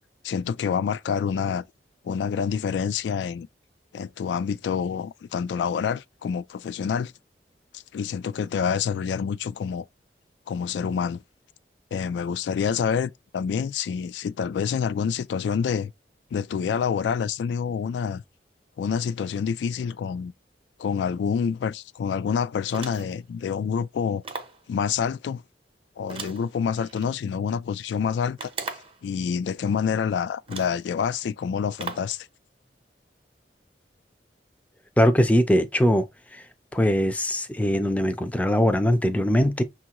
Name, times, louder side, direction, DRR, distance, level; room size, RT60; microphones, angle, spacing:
voice 1, 0.2-1.6 2.0-3.5 3.9-7.1 7.7-9.9 10.5-11.2 11.9-15.9 16.3-18.2 18.8-20.3 20.8-24.2 24.7-25.4 26.0-28.5 29.0-32.3, left 7 dB, 85° left, 0.3 m, -27 dB
sound 1, 22.7-23.2 24.2-24.6 26.1-27.1 28.4-29.0 29.9-30.0 30.5-30.8 31.8-32.2, right 4 dB, 30° right, 0.7 m, -37 dB
voice 2, 35.0-36.1 36.3-36.4 36.7-39.6, equal, 10° left, 0.4 m, -21 dB
6.0 x 2.4 x 2.9 m
head